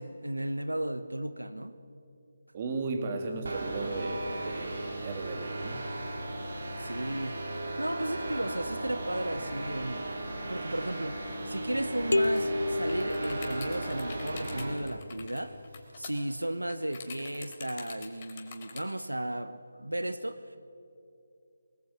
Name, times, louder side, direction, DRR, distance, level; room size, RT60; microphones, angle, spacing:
voice 1, 0.0-1.7 6.8-10.1 10.5-15.6 16.0-20.6, right 1 dB, 85° right, 12 dB, 1.2 m, -35 dB
voice 2, 2.5-5.9, right 3 dB, 30° right, 5 dB, 3.0 m, -35 dB
sound 1, 3.4-14.8, right 1 dB, 60° right, 4.2 m, -36 dB
sound 2, 12.1-14.0, left 2 dB, 75° left, 0.7 m, -30 dB
sound 3, 12.2-12.4 12.7-18.8, left 6 dB, 30° left, 3.8 m, -45 dB
24.0 x 20.5 x 8.9 m, 2.5 s
figure-of-eight pair, 155°, 0 cm